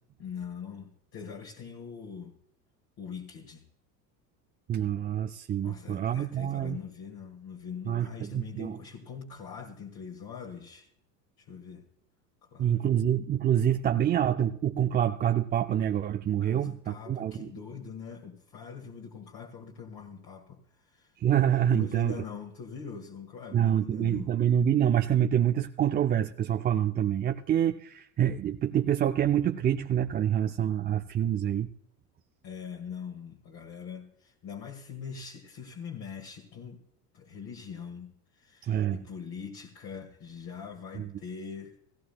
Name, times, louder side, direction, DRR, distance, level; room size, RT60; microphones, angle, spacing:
voice 1, 0.2-2.3 3.0-3.6 5.6-10.9 11.4-11.8 12.5-12.8 16.4-21.1 21.7-24.3 32.4-36.8 37.1-41.8, left 6 dB, 45° left, 2.0 m, -42 dB
voice 2, 4.7-6.8 7.9-8.8 12.6-17.5 21.2-22.2 23.5-31.7 38.6-39.0 41.0-41.1, right 10 dB, 20° right, 0.4 m, -26 dB
17.0 x 15.5 x 2.3 m
hypercardioid pair, 85°, 49 cm